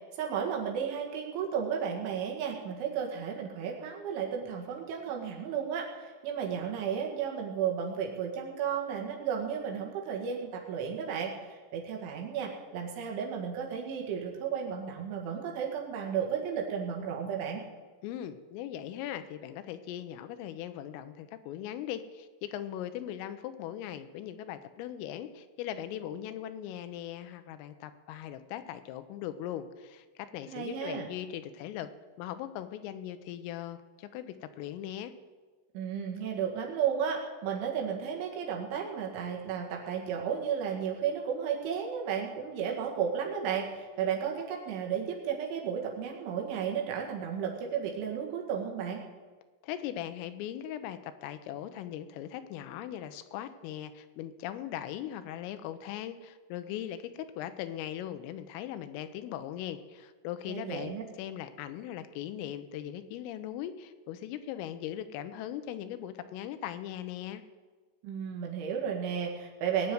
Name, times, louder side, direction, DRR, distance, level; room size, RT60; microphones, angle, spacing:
voice 1, 0.1-11.3 11.7-17.6 30.5-31.1 35.7-49.0 60.5-61.0 68.0-69.9, right 7 dB, 70° right, 0 dB, 4.2 m, -33 dB
voice 2, 18.0-31.9 32.2-35.1 49.6-60.9 61.2-67.4, left 11 dB, 90° left, 11 dB, 3.5 m, -39 dB
20.0 x 7.1 x 9.4 m, 1.4 s
omnidirectional pair, 5.8 m